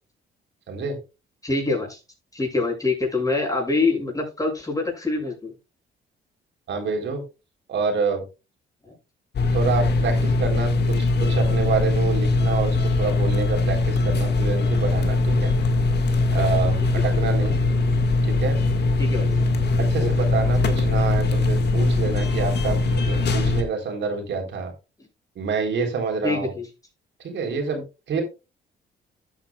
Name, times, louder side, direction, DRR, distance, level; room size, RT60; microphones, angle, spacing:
voice 1, 0.7-1.0 6.7-7.2 7.7-8.2 9.5-15.5 16.3-17.6 18.2-18.6 19.9-24.7 25.4-26.6 27.2-28.2, right 5 dB, 65° right, 3 dB, 3.8 m, -27 dB
voice 2, 1.4-2.0 2.3-5.5 8.9-9.0 17.2-17.4 19.0-19.3 20.0-20.1 26.2-26.7, left 3 dB, 15° left, 0 dB, 6.8 m, -25 dB
sound 1, 9.3-23.6, left 3 dB, 60° left, 1.9 m, -21 dB
13.0 x 8.9 x 2.4 m, 0.28 s
cardioid pair, 90°, 20 cm